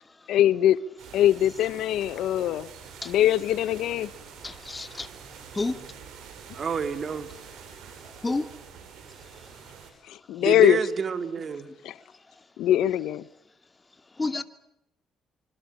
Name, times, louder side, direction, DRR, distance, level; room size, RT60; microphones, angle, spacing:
voice 1, 0.3-0.8 1.1-2.7 3.1-4.1 10.1-10.8 11.8-11.9 12.6-13.2, left 12 dB, 85° left, 1.1 m, -22 dB
sound 1, 1.0-9.9, right 7 dB, 85° right, 7.8 m, -46 dB
voice 2, 4.4-5.1 5.5-5.8 8.2-8.5 14.2-14.4, left 3 dB, 20° left, 2.6 m, -29 dB
voice 3, 6.5-7.3 10.4-11.7, right 6 dB, 45° right, 3.3 m, -28 dB
26.5 x 25.5 x 8.7 m
cardioid pair, 95°, 0 cm